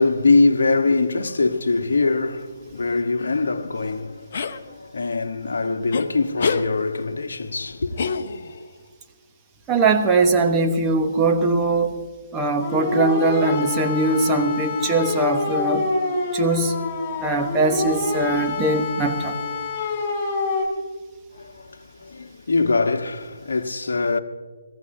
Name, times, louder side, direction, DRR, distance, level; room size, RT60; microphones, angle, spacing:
voice 1, 0.0-8.1 21.3-24.2, left 3 dB, 60° left, 1.1 m, -23 dB
sound 1, 4.3-4.6 5.9-6.1 6.4-6.7 8.0-8.6, left 5 dB, 45° left, 0.8 m, -25 dB
voice 2, 9.7-12.0 12.3-15.9 16.3-16.9 17.2-19.4, right 3 dB, 15° right, 1.2 m, -21 dB
sound 2, 12.6-20.6, left 3 dB, 15° left, 5.1 m, -27 dB
25.0 x 15.0 x 2.7 m
figure-of-eight pair, 140°, 0 cm